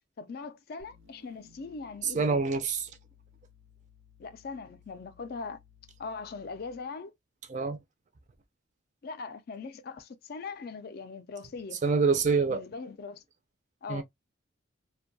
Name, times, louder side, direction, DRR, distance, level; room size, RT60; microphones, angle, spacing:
voice 1, 0.2-2.5 4.2-5.6 6.0-7.1 9.0-11.8 12.5-13.2 13.8-14.0, left 4 dB, 50° left, 0.3 m, -40 dB
sound 1, 0.8-7.0, left 6 dB, 85° right, 0.7 m, -60 dB
voice 2, 2.0-2.9 7.5-7.8 11.8-12.6 13.9-14.0, right 4 dB, 35° right, 0.4 m, -26 dB
2.6 x 2.2 x 2.6 m
head